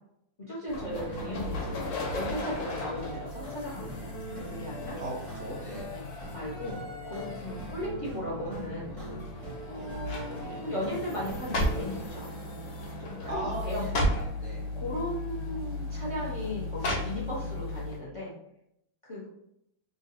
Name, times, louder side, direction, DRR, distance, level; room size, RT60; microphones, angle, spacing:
voice 1, 0.5-1.8 2.1-5.0 5.9-6.1 6.3-6.8 7.0-9.2 9.7-12.3 13.0-14.1 14.7-18.3 19.0-19.3, left 1 dB, 25° left, -6 dB, 0.8 m, -36 dB
sound 1, 0.7-18.0, left 2 dB, 80° left, 1.7 m, -38 dB
sound 2, 0.7-12.1, right 1 dB, 25° right, 0.8 m, -42 dB
voice 2, 5.0-5.9 9.7-9.9 13.3-14.6, right 1 dB, 75° right, -4 dB, 0.6 m, -38 dB
sound 3, 9.2-9.6 10.0-10.4 11.1-12.0 12.8-13.0 13.3-13.4 13.8-14.3 15.3-15.4 16.8-17.5 17.9-18.0, equal, 65° left, 1.6 m, -30 dB
3.8 x 2.9 x 2.8 m, 0.78 s
omnidirectional pair, 2.2 m